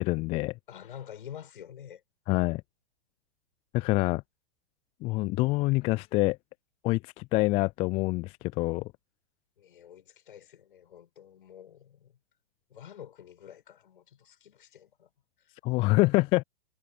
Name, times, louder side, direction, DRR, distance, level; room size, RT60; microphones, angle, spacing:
voice 1, 0.0-0.5 2.3-2.6 3.7-4.2 5.0-6.4 6.8-8.9 15.6-16.4, left 22 dB, 20° left, 0.4 m, -26 dB
voice 2, 0.7-2.0 9.6-12.2 12.7-15.1 15.4-15.5, left 9 dB, 60° left, 7.9 m, -48 dB
figure-of-eight pair, 105°, 29 cm